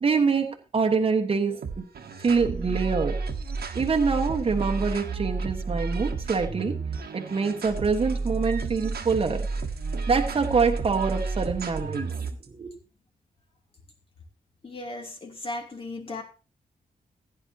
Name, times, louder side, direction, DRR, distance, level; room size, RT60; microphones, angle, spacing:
voice 1, 0.0-1.8 2.2-3.2 3.7-6.8 7.1-9.5 10.1-12.2 12.5-12.7, right 5 dB, 35° right, 2 dB, 1.3 m, -25 dB
sound 1, 1.6-12.5, right 4 dB, 80° right, 1.5 m, -31 dB
voice 2, 14.6-16.2, left 2 dB, 35° left, 2 dB, 2.7 m, -36 dB
16.0 x 9.9 x 2.8 m, 0.33 s
wide cardioid pair, 165°, 16 cm